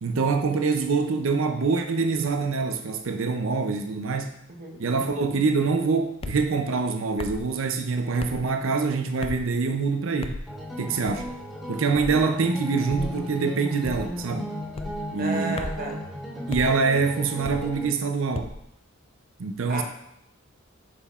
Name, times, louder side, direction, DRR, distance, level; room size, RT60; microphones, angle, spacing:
voice 1, 0.0-4.4 4.8-10.4 10.8-11.4 11.7-14.5 15.1-15.6 16.4-18.5 19.4-19.8, right 4 dB, 65° right, 5 dB, 0.5 m, -25 dB
voice 2, 4.5-4.8 15.2-16.0 19.7-19.8, right 3 dB, 45° right, 1 dB, 1.1 m, -32 dB
sound 1, 6.2-6.4 7.2-7.5 8.2-8.4 9.2-9.5 10.2-10.5 11.0-11.3 11.9-12.2 12.9-13.2 13.8-14.2 14.7-15.0 15.6-15.9 16.5-16.7 17.4-17.7 18.3-18.6, left 2 dB, 25° left, 0.3 m, -35 dB
sound 2, 10.5-17.8, equal, ahead, 1.6 m, -36 dB
8.3 x 5.5 x 2.4 m, 0.79 s
head